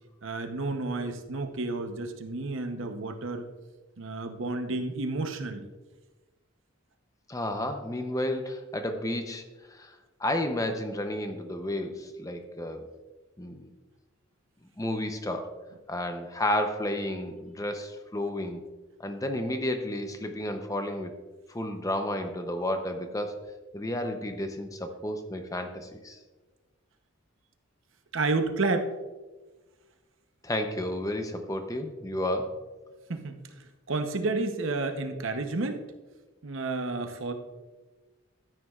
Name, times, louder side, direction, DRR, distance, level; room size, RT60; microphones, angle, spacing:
voice 1, 0.2-3.5 4.0-5.7 28.1-28.9 33.1-33.4 33.9-35.9 36.4-37.3, right 3 dB, 65° right, 7 dB, 0.8 m, -30 dB
voice 2, 7.3-9.4 9.7-12.9 13.4-13.7 14.8-15.6 15.9-18.6 19.0-21.1 21.5-26.2 30.4-32.7, left 1 dB, 15° left, 6 dB, 0.6 m, -32 dB
13.5 x 9.3 x 2.4 m, 1.2 s
head